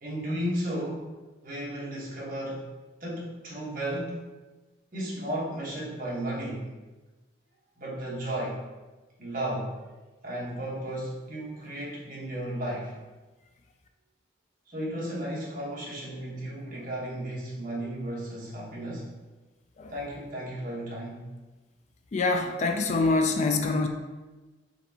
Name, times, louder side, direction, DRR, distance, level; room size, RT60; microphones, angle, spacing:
voice 1, 0.0-1.1 1.4-2.7 3.0-4.3 4.9-6.7 7.8-8.6 9.2-9.8 10.2-13.0 14.7-19.1 19.9-21.3, right 1 dB, 50° right, -5 dB, 1.3 m, -34 dB
voice 2, 22.1-23.9, left 3 dB, 40° left, 5 dB, 0.4 m, -25 dB
4.3 x 4.0 x 2.8 m, 1.2 s
head